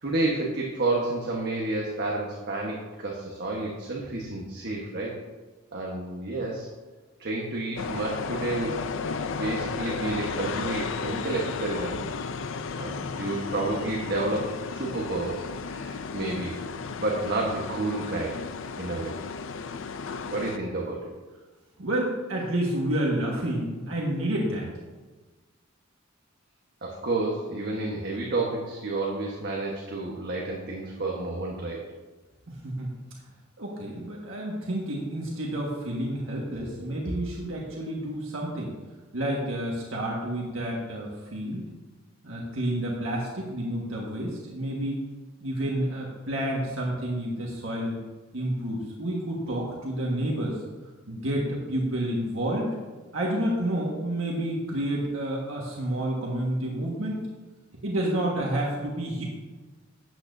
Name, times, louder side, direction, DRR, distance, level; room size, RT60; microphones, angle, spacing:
voice 1, 0.0-5.1 5.7-6.7 7.2-8.8 9.3-12.0 12.7-16.5 17.0-18.4 18.8-19.2 20.3-21.1 26.8-31.8, right 2 dB, 55° right, -2 dB, 1.3 m, -30 dB
sound 1, 7.8-20.6, left 5 dB, 70° left, 0.5 m, -34 dB
voice 2, 21.8-24.7 32.5-32.9 33.6-38.7 39.1-41.7 42.2-45.0 45.4-48.0 48.3-50.6 51.1-52.7 53.1-57.2 57.8-59.2, right 1 dB, 75° right, -3 dB, 1.6 m, -29 dB
12.5 x 8.7 x 2.7 m, 1.3 s
head